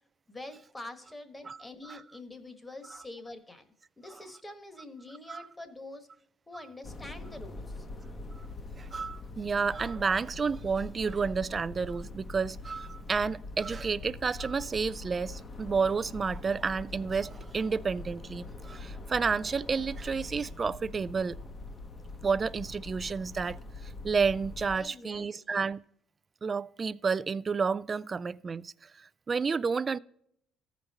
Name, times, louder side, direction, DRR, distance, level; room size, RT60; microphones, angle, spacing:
voice 1, 0.3-3.6 4.0-6.1 6.5-7.9 24.8-25.6, left 2 dB, 15° left, 1.2 m, -45 dB
sound 1, 6.8-24.8, left 2 dB, 30° left, 0.9 m, -43 dB
voice 2, 8.8-21.4 22.2-25.8 26.4-30.0, right 5 dB, 30° right, 0.3 m, -31 dB
14.0 x 5.1 x 4.1 m
cardioid pair, 105°, 0 cm